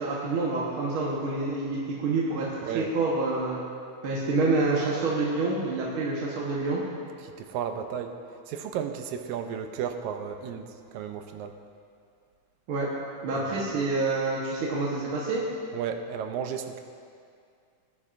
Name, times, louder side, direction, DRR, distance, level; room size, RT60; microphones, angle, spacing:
voice 1, 0.0-3.6 4.0-6.8 12.7-12.9 13.2-15.4, right 3 dB, 55° right, -5 dB, 1.8 m, -27 dB
voice 2, 7.2-8.2 8.5-11.6 13.3-13.4 15.7-16.8, right 8 dB, 85° right, 6 dB, 2.0 m, -34 dB
19.5 x 9.6 x 2.6 m, 2.3 s
omnidirectional pair, 3.3 m